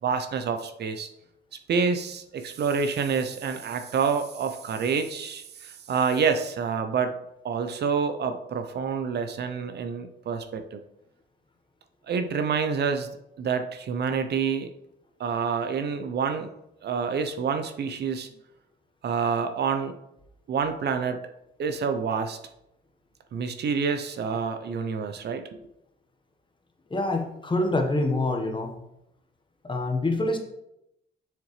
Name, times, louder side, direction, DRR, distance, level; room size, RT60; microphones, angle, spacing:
voice 1, 0.0-1.1 1.7-7.1 7.4-10.8 12.1-13.1 13.4-14.7 15.2-16.5 16.8-18.3 19.0-19.9 20.5-21.2 21.6-22.4 23.3-25.4, right 6 dB, 55° right, 8 dB, 0.7 m, -27 dB
voice 2, 26.9-28.7 29.6-30.4, left 2 dB, 25° left, 3 dB, 1.3 m, -26 dB
6.8 x 6.4 x 3.3 m, 0.84 s
cardioid pair, 90°, 20 cm